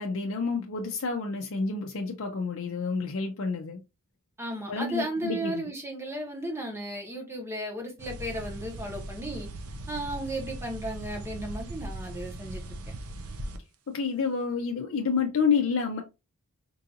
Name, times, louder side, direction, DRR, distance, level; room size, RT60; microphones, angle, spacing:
voice 1, 0.0-3.8 4.7-5.7 13.9-16.0, left 5 dB, 60° left, 0.5 m, -29 dB
voice 2, 4.4-9.5 9.9-12.6, right 1 dB, 10° right, 1.0 m, -34 dB
sound 1, 8.0-13.6, right 1 dB, 75° right, 0.6 m, -39 dB
4.6 x 2.6 x 2.6 m
head